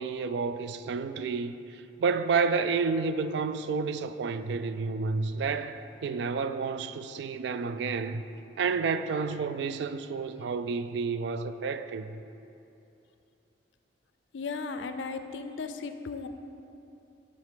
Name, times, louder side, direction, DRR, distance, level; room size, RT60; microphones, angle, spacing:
voice 1, 0.0-8.2 8.6-12.2, right 4 dB, 65° right, 0.3 m, -30 dB
voice 2, 14.3-16.3, left 4 dB, 75° left, 0.4 m, -36 dB
9.6 x 4.1 x 5.0 m
head